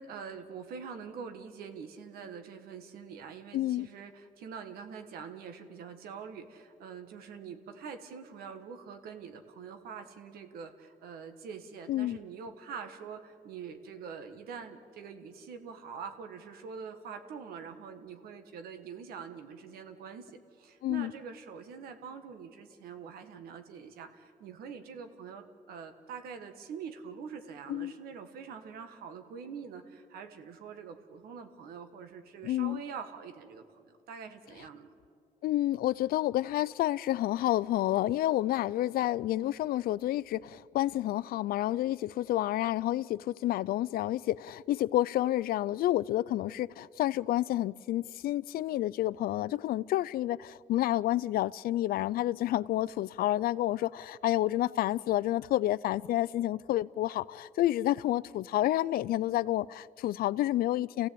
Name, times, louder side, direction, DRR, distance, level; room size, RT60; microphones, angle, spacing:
voice 1, 0.0-20.3 20.6-34.9, right 6 dB, 85° right, 1.6 m, -44 dB
voice 2, 3.5-3.9 11.9-12.2 20.8-21.1 27.7-27.9 32.4-32.8 35.4-61.1, left 14 dB, 80° left, 0.5 m, -29 dB
28.5 x 16.5 x 8.6 m
cardioid pair, 80°, 15 cm